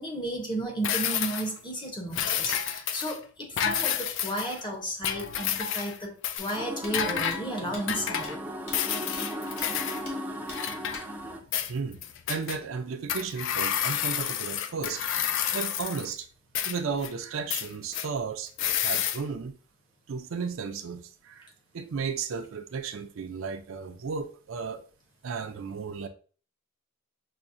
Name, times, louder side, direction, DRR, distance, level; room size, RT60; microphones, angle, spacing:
voice 1, 0.0-8.4, right 1 dB, 20° left, 0.8 m, -33 dB
sound 1, 0.8-1.6 2.1-3.2 3.6-4.6 5.0-6.0 6.2-6.6 6.9-7.4 7.9-8.4 8.7-10.0 10.5-11.3 11.5-12.6 13.1-16.1 16.5-17.1 17.5-18.1 18.6-19.2, left 9 dB, 60° left, 0.3 m, -30 dB
sound 2, 6.4-6.5 6.8-6.9 7.3-7.4 7.7-7.8 8.2-8.3 8.7-8.8 9.1-9.2 9.6-9.7 10.1-10.2 10.5-10.6 10.9-11.0, left 2 dB, 85° left, 1.2 m, -43 dB
sound 3, 6.5-11.4, equal, 10° right, 0.4 m, -37 dB
voice 2, 11.7-12.0 12.3-15.1 15.5-16.3 16.6-19.6 20.1-21.5 21.7-24.8 25.2-26.1, right 5 dB, 65° right, 0.4 m, -34 dB
5.7 x 2.1 x 2.5 m
head